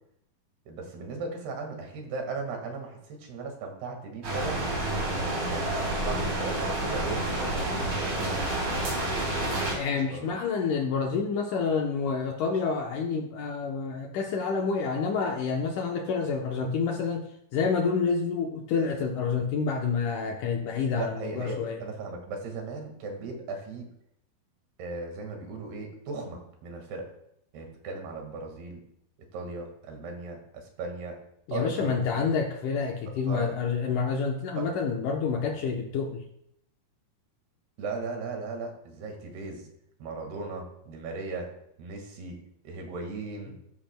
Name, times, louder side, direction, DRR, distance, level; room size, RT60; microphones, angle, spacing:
voice 1, 0.7-4.7 5.5-8.7 9.9-10.3 20.9-23.9 24.8-27.1 27.5-28.8 29.3-31.2 31.5-32.3 33.3-33.5 34.6-34.7 37.8-39.7 40.0-41.5 41.8-42.4 42.6-43.5, right 3 dB, 85° right, 2 dB, 3.9 m, -37 dB
sound 1, 4.2-9.7, right 1 dB, 40° right, 4.9 m, -29 dB
voice 2, 9.8-17.3 17.5-21.8 31.5-36.2, left 5 dB, 70° left, 2 dB, 2.0 m, -28 dB
13.5 x 13.5 x 2.2 m, 0.75 s
omnidirectional pair, 4.5 m